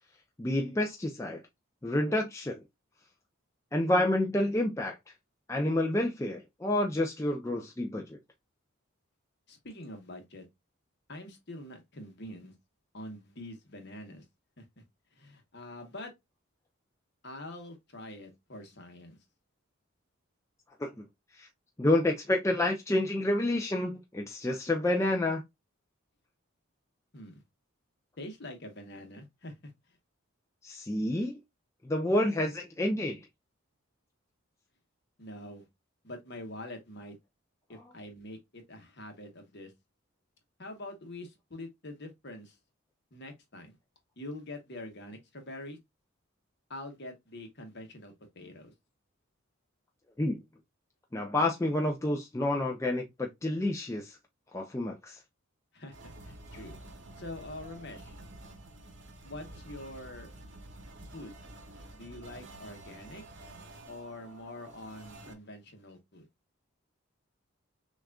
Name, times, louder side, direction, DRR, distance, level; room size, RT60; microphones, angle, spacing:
voice 1, 0.4-1.4 1.8-2.6 3.7-5.0 5.5-8.2 20.8-20.9 21.3-21.5 21.8-25.4 30.6-31.4 31.8-33.3 50.2-50.4 51.1-54.2 54.5-55.2, left 1 dB, 15° left, 0.4 m, -29 dB
voice 2, 9.5-10.5 11.1-12.5 12.9-14.2 14.6-14.7 15.1-16.1 17.2-19.2 27.1-27.4 28.2-29.7 35.2-35.7 36.0-37.2 37.7-39.7 40.6-42.6 43.1-43.8 44.2-45.8 46.7-48.7 55.7-56.8 57.2-58.1 59.2-60.3 61.1-61.4 61.9-63.2 63.9-66.3, left 1 dB, 50° left, 1.1 m, -45 dB
sound 1, 55.9-65.3, right 1 dB, 55° right, 0.8 m, -49 dB
6.2 x 2.4 x 2.2 m
head